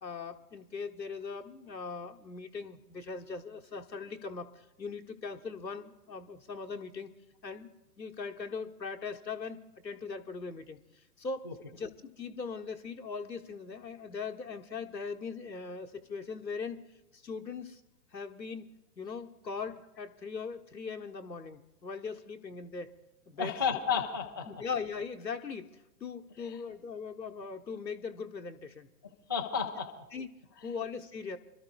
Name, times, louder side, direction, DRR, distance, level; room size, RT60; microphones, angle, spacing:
voice 1, 0.0-7.1 7.4-10.8 11.2-16.8 17.1-17.8 18.1-18.7 19.0-22.9 23.3-23.6 24.5-28.9 30.1-30.3 30.6-31.4, left 5 dB, 85° left, 4 dB, 1.2 m, -40 dB
voice 2, 23.4-24.5 26.4-26.6 29.3-29.9 30.6-30.7, left 6 dB, 15° left, -2 dB, 0.4 m, -32 dB
29.5 x 13.0 x 2.3 m, 0.95 s
figure-of-eight pair, 120°, 50 cm